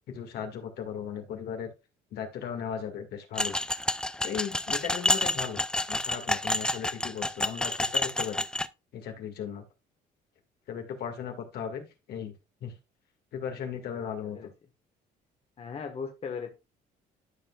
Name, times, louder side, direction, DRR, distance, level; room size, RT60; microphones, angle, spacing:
voice 1, 0.1-1.7 2.1-3.6 4.2-5.6 5.9-8.4 8.9-9.6 10.7-12.3 12.6-12.8 13.3-14.4, left 8 dB, 70° left, 4 dB, 2.0 m, -36 dB
sound 1, 3.4-8.7, left 1 dB, 5° left, 0.4 m, -29 dB
voice 2, 15.6-16.5, left 5 dB, 35° left, 4 dB, 1.4 m, -37 dB
12.5 x 5.4 x 2.4 m, 0.27 s
cardioid pair, 110°, 17 cm